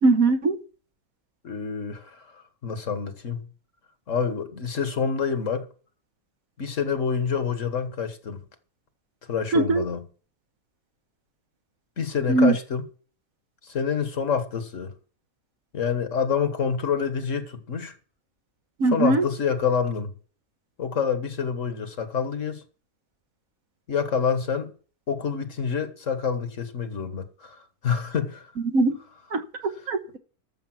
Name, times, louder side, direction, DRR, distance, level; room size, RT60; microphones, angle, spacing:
voice 1, 0.0-0.6 9.5-9.9 12.3-12.5 18.8-19.2 28.6-29.0 29.3-30.2, right 3 dB, 70° right, 1.7 m, -21 dB
voice 2, 1.4-3.5 4.1-5.7 6.6-8.4 9.3-10.1 12.0-12.8 13.6-14.9 15.7-17.9 18.9-20.1 20.8-22.6 23.9-24.7 25.1-28.5, left 6 dB, 60° left, 1.8 m, -27 dB
13.5 x 7.0 x 6.1 m
omnidirectional pair, 1.5 m